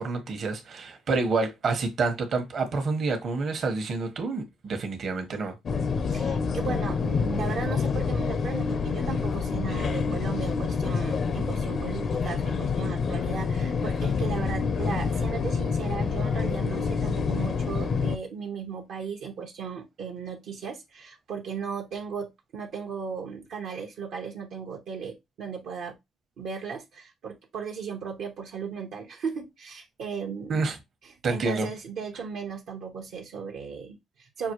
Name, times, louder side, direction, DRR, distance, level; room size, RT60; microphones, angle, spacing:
voice 1, 0.0-5.5 30.5-30.8 31.2-31.7, right 3 dB, 55° right, 1.1 m, -28 dB
sound 1, 5.7-18.2, left 5 dB, 50° left, 0.5 m, -27 dB
voice 2, 6.1-25.9 26.4-30.6 31.3-34.5, right 6 dB, 80° right, 0.9 m, -36 dB
5.8 x 2.4 x 3.0 m
cardioid pair, 90°, 0 cm